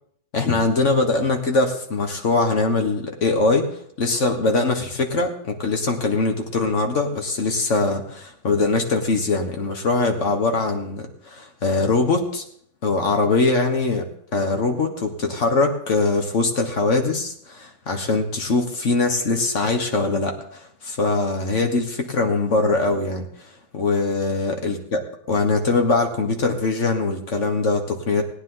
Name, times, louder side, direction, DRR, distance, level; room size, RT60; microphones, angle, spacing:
voice 1, 0.3-3.6 4.0-12.4 12.8-14.0 14.3-23.3 23.7-25.0 25.3-28.2, left 3 dB, 45° left, 4 dB, 1.6 m, -22 dB
17.5 x 9.7 x 3.9 m, 0.65 s
omnidirectional pair, 1.9 m